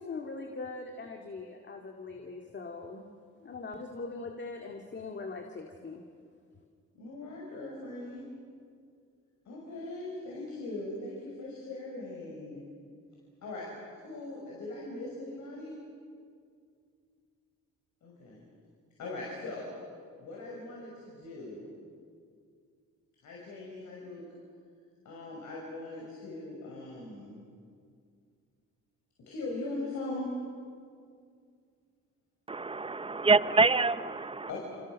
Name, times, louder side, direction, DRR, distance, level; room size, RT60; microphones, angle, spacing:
voice 1, 0.0-3.1 3.4-6.0, left 3 dB, 35° left, 2.1 m, -41 dB
voice 2, 6.9-8.2 9.5-12.6 13.4-13.7 13.9-15.8 18.0-18.4 19.0-19.7 20.2-21.7 23.2-24.2 25.0-27.4 29.2-30.3 34.5-34.6, left 2 dB, 70° left, 6.3 m, -40 dB
voice 3, 32.5-34.5, right 3 dB, 20° right, 0.7 m, -26 dB
29.0 x 27.0 x 6.4 m
cardioid pair, 90°, 30 cm